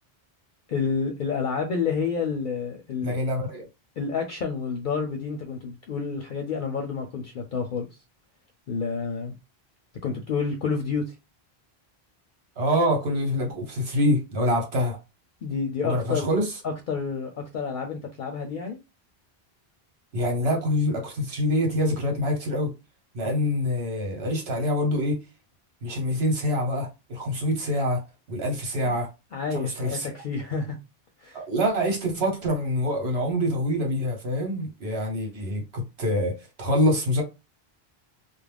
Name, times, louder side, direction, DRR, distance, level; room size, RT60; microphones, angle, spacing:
voice 1, 0.7-3.2 4.0-7.9 8.7-9.3 10.0-11.2 15.4-16.3 16.6-18.8 23.2-23.5 28.8-29.0 29.3-30.8 31.2-31.4, left 5 dB, 60° left, 0.6 m, -29 dB
voice 2, 3.0-3.6 12.6-15.0 15.8-16.5 20.1-22.7 23.1-25.2 25.8-29.1 29.5-30.1 31.3-37.2, equal, 80° right, 1.2 m, -25 dB
2.4 x 2.0 x 3.3 m
omnidirectional pair, 1.1 m